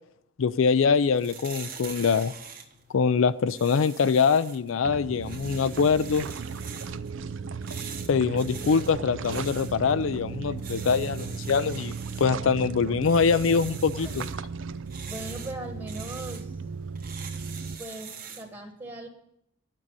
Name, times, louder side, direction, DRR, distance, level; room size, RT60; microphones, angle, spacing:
voice 1, 0.4-2.3 2.9-6.3 8.1-14.2, left 5 dB, 90° left, 12 dB, 0.4 m, -24 dB
sound 1, 0.9-18.5, right 6 dB, 50° right, 1.5 m, -44 dB
sound 2, 4.8-17.8, right 5 dB, 75° right, 0.5 m, -36 dB
voice 2, 15.1-16.6 17.8-19.1, right 1 dB, 25° right, 1 dB, 1.5 m, -39 dB
10.5 x 7.6 x 9.8 m, 0.76 s
head